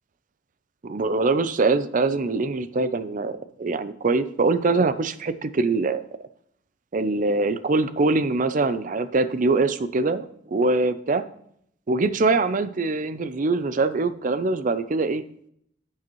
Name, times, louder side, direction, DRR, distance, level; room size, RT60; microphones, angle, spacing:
voice 1, 0.8-6.0 6.9-11.2 11.9-15.2, right 3 dB, 40° right, 13 dB, 0.5 m, -23 dB
11.5 x 7.6 x 3.0 m, 0.70 s
head